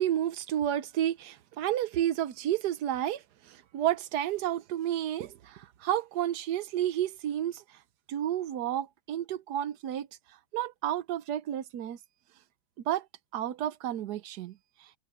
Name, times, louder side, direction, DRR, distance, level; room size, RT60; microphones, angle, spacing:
voice 1, 0.0-7.6 8.1-10.1 10.5-12.0 12.9-13.1 13.3-14.6, right 11 dB, 65° right, 1.2 m, -31 dB
open air
omnidirectional pair, 2.1 m